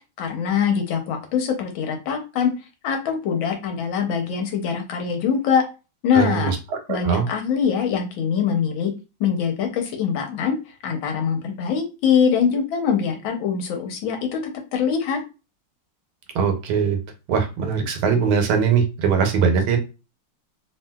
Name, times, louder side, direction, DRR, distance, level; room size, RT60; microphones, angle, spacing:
voice 1, 0.2-2.5 2.8-5.6 6.0-6.5 6.9-8.9 9.2-10.6 10.8-15.2, left 7 dB, 75° left, 4 dB, 1.4 m, -23 dB
voice 2, 6.1-6.6 6.9-7.2 16.3-17.0 17.3-19.8, right 6 dB, 80° right, 5 dB, 1.5 m, -21 dB
3.2 x 2.6 x 2.2 m, 0.29 s
omnidirectional pair, 2.3 m